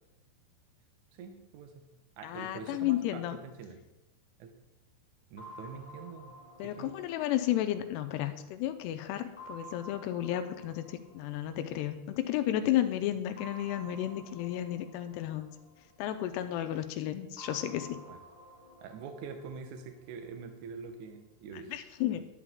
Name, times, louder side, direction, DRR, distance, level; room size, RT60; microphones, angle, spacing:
voice 1, 1.1-1.9 2.2-3.8 4.4-4.5 5.3-6.4 6.6-6.9 18.1-18.2 18.8-21.7, right 5 dB, 80° right, 5 dB, 1.7 m, -45 dB
voice 2, 2.2-3.4 6.6-15.5 16.0-18.0 21.5-22.2, left 12 dB, 85° left, 9 dB, 2.6 m, -33 dB
sound 1, 5.4-8.7 9.4-12.3 13.4-16.5 17.4-20.5, equal, 10° left, 2.6 m, -52 dB
11.0 x 9.9 x 3.7 m, 0.97 s
omnidirectional pair, 5.1 m